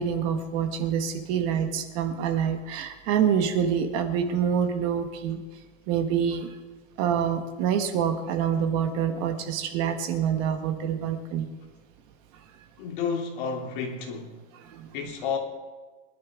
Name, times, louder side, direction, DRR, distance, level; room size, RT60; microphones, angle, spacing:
voice 1, 0.0-5.4 5.9-6.5 7.0-11.5 14.6-14.9, right 8 dB, 35° right, 1.2 m, -26 dB
voice 2, 12.8-14.3 14.9-15.4, left 6 dB, 55° left, 2.8 m, -31 dB
24.0 x 11.5 x 3.6 m
supercardioid pair, 175°, 30 cm